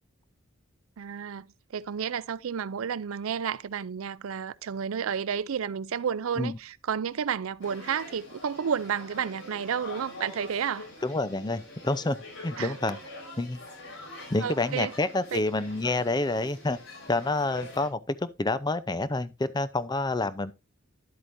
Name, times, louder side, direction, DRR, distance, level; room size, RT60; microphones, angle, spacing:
voice 1, 1.0-10.9 12.6-12.8 14.4-14.9 15.3-15.4, right 7 dB, 85° right, 0.4 m, -31 dB
sound 1, 7.6-17.9, left 1 dB, 75° left, 4.8 m, -45 dB
voice 2, 11.0-12.2 12.4-13.0 13.4-13.6 14.3-16.8 17.1-20.5, left 2 dB, 20° left, 0.6 m, -28 dB
11.5 x 7.9 x 2.6 m
head